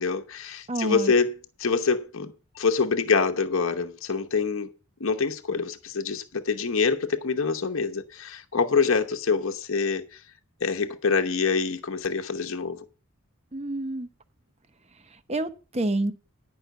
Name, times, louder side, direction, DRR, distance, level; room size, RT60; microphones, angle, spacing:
voice 1, 0.0-1.3 1.6-4.7 5.0-10.0 10.6-12.8, left 5 dB, 65° left, 0.9 m, -25 dB
voice 2, 0.7-1.1 13.5-14.1 15.3-16.1, right 1 dB, 30° right, 0.8 m, -28 dB
10.5 x 5.6 x 8.0 m
head